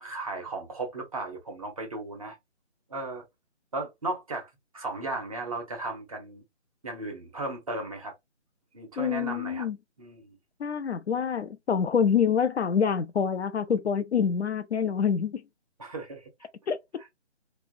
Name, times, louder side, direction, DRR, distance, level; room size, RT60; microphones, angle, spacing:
voice 1, 0.0-2.4 2.9-3.2 3.7-6.4 6.8-8.1 8.7-9.7 10.0-10.4 15.8-16.3, right 2 dB, 30° right, 0.8 m, -35 dB
voice 2, 9.0-9.8 10.6-15.4 16.7-16.8, left 7 dB, 65° left, 0.5 m, -26 dB
3.2 x 2.3 x 2.3 m
figure-of-eight pair, 160°, 35 cm